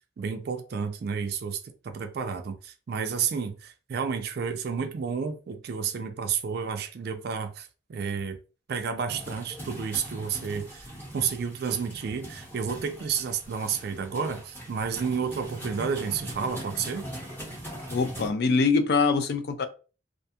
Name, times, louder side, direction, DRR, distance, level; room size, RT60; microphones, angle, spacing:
voice 1, 0.2-8.4 8.7-10.9 11.1-17.1, right 6 dB, 55° right, 0.3 m, -31 dB
sound 1, 9.1-18.3, equal, 10° left, 0.9 m, -41 dB
voice 2, 17.9-19.7, left 4 dB, 60° left, 0.4 m, -23 dB
2.4 x 2.2 x 2.7 m
head